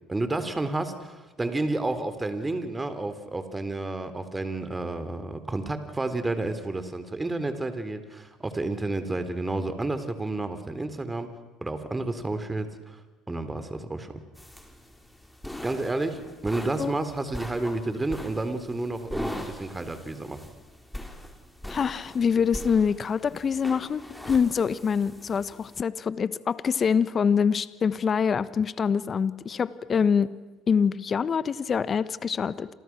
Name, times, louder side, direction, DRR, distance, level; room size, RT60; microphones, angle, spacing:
voice 1, 0.1-11.3 11.6-13.0 13.3-14.1 15.6-20.4, right 2 dB, 15° right, 10 dB, 3.8 m, -30 dB
sound 1, 14.4-25.8, left 1 dB, 5° left, 5.0 m, -41 dB
voice 2, 21.7-30.3 30.7-32.7, left 6 dB, 40° left, 16 dB, 1.2 m, -25 dB
29.5 x 28.0 x 6.2 m, 1.2 s
hypercardioid pair, 65°, 0 cm